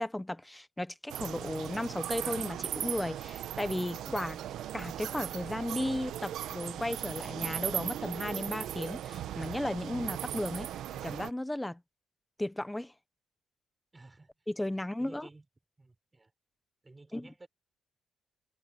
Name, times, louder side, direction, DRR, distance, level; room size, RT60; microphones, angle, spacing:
voice 1, 0.0-4.4 4.7-10.7 11.0-11.8 12.4-12.9 14.5-15.3 17.1-17.3, left 1 dB, 5° left, 0.8 m, -35 dB
sound 1, 1.1-11.3, right 11 dB, 80° right, 1.0 m, -38 dB
voice 2, 13.9-14.5 15.0-15.5 15.8-16.3 16.8-17.5, right 2 dB, 15° right, 4.2 m, -54 dB
cardioid pair, 155°, 0 cm